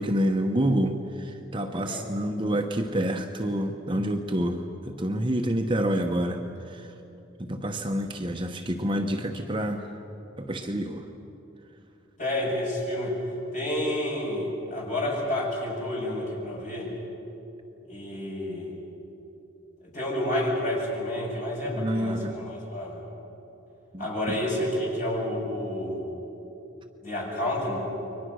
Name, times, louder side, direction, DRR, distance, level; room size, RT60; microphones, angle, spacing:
voice 1, 0.0-6.4 6.7-6.9 7.4-9.9 10.4-11.0 21.8-22.4 23.9-24.1, equal, 25° right, 4 dB, 1.0 m, -28 dB
voice 2, 12.2-13.2 13.5-16.9 17.9-18.7 19.8-23.0 24.0-26.1 27.0-27.8, left 1 dB, 40° left, -3 dB, 7.3 m, -30 dB
30.0 x 23.0 x 6.4 m, 2.9 s
head